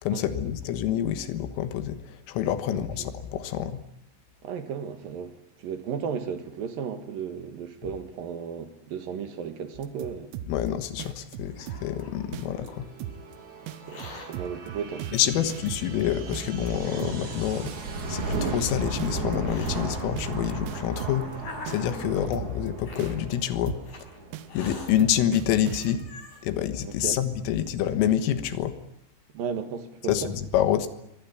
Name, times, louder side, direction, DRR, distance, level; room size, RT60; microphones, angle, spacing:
voice 1, 0.0-3.8 10.5-12.9 15.1-23.8 24.5-26.0 26.4-28.8 30.1-30.9, left 10 dB, 90° left, 4.0 m, -27 dB
voice 2, 4.4-10.3 13.9-15.2 22.1-22.3 26.8-27.2 29.3-30.3, right 7 dB, 60° right, 2.7 m, -35 dB
sound 1, 9.7-10.7 11.0-12.0 12.3-12.7 13.0-13.3 13.7-16.0 16.3-17.3 17.7-18.0 18.3-18.7 19.0-21.3 21.7-22.7 23.0-23.4 23.7-24.0 24.3-26.1, right 11 dB, 85° right, 3.8 m, -38 dB
Hiss, 11.1-12.7 13.7-14.3 15.2-15.3 16.1-16.2 16.8-17.8 18.7-19.9 20.7-22.2 22.8-23.2 23.8-24.0 24.5-24.9 25.4-25.5 25.7-26.4, left 2 dB, 40° left, 7.1 m, -43 dB
sound 2, 11.8-25.3, right 3 dB, 40° right, 4.1 m, -36 dB
23.5 x 19.5 x 9.8 m
omnidirectional pair, 5.8 m